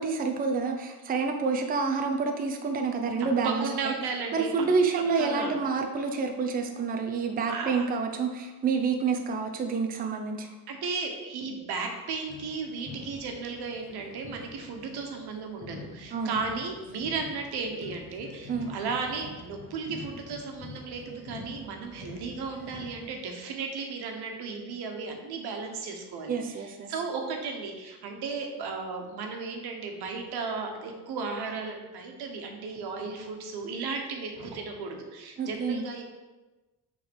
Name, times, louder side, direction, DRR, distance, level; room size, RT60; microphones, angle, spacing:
voice 1, 0.0-4.0 4.3-10.5 16.1-16.3 18.5-18.7 26.3-26.9 35.4-35.8, right 4 dB, 25° right, 4 dB, 0.5 m, -28 dB
voice 2, 3.4-4.5 5.2-5.5 7.5-7.9 10.7-36.0, right 4 dB, 80° right, 3 dB, 1.3 m, -35 dB
sound 1, 12.3-23.1, left 4 dB, 35° left, 0.6 m, -46 dB
6.0 x 3.8 x 6.2 m, 1.2 s
cardioid pair, 165°, 38 cm